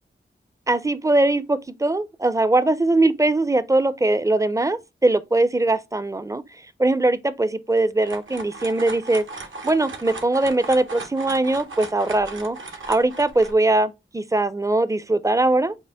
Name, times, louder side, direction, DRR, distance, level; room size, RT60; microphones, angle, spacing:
voice 1, 0.7-9.2 9.6-12.6 12.9-15.8, right 2 dB, 15° right, 0.4 m, -21 dB
sound 1, 7.7-13.5, right 3 dB, 75° right, 0.7 m, -37 dB
5.0 x 2.1 x 3.4 m
cardioid pair, 40°, 20 cm